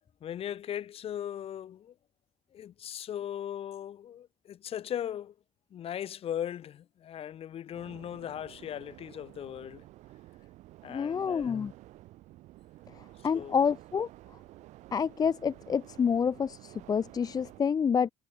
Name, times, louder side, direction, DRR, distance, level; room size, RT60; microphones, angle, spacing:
voice 1, 0.2-1.9 2.5-5.3 5.7-9.8 10.8-11.6 13.3-13.7, left 10 dB, 50° left, 1.5 m, -38 dB
sound 1, 7.7-17.6, right 17 dB, 75° right, 5.7 m, -52 dB
voice 2, 10.9-11.7 13.2-14.1 14.9-18.1, left 6 dB, 30° left, 0.5 m, -28 dB
supercardioid pair, 90°, 12 cm